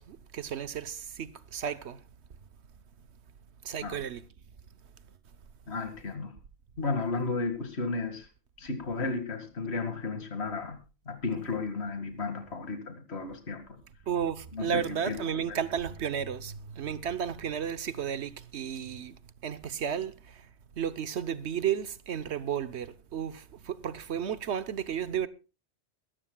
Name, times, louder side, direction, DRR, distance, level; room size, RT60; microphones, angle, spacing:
voice 1, 0.0-2.0 3.6-4.2 14.1-20.4 20.8-25.3, right 8 dB, 65° right, 1.2 m, -33 dB
voice 2, 5.7-6.3 6.8-8.3 8.6-10.8 11.1-13.6 14.5-15.6, left 3 dB, 60° left, 2.3 m, -33 dB
22.5 x 13.5 x 2.3 m
omnidirectional pair, 1.2 m